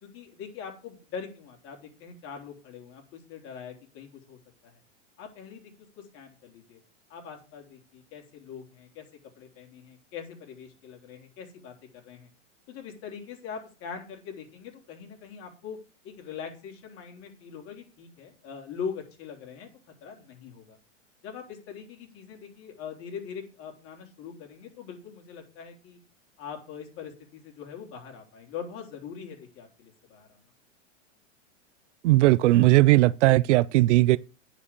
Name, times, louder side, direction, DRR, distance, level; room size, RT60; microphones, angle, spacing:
voice 1, 0.0-4.8 5.2-6.8 7.1-9.1 9.4-12.3 12.7-15.8 16.0-19.7 20.0-20.8 21.2-26.0 26.4-30.4, left 6 dB, 35° left, 3.7 m, -42 dB
voice 2, 32.0-34.2, right 18 dB, 70° right, 0.5 m, -18 dB
9.9 x 5.2 x 6.8 m
supercardioid pair, 140°, 37 cm